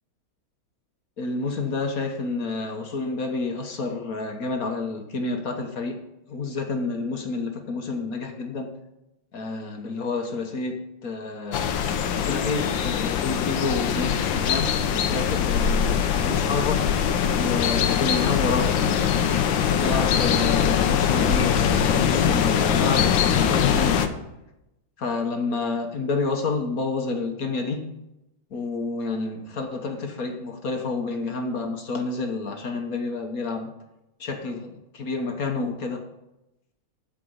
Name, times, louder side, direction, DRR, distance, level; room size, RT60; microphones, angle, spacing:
voice 1, 1.2-6.0 6.3-8.7 9.3-11.7 12.2-16.9 17.4-18.7 19.7-24.0 25.0-27.9 28.5-33.7 34.2-36.0, left 3 dB, 50° left, 4 dB, 1.3 m, -29 dB
sound 1, 11.5-24.1, left 8 dB, 70° left, 1.5 m, -22 dB
13.0 x 5.0 x 7.9 m, 0.91 s
omnidirectional pair, 2.3 m